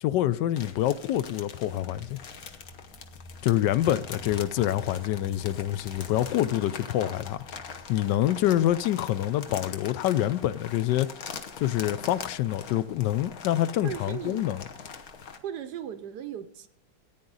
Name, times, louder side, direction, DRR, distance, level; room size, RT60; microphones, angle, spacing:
voice 1, 0.0-2.2 3.4-7.4 7.9-11.1 11.6-14.6, left 13 dB, 75° left, 1.1 m, -26 dB
sound 1, 0.5-15.4, left 6 dB, 50° left, 1.3 m, -42 dB
sound 2, 1.6-7.8, left 1 dB, 90° left, 2.4 m, -49 dB
voice 2, 13.8-14.5 15.4-16.7, right 10 dB, 70° right, 1.1 m, -37 dB
14.5 x 9.5 x 3.9 m
omnidirectional pair, 2.2 m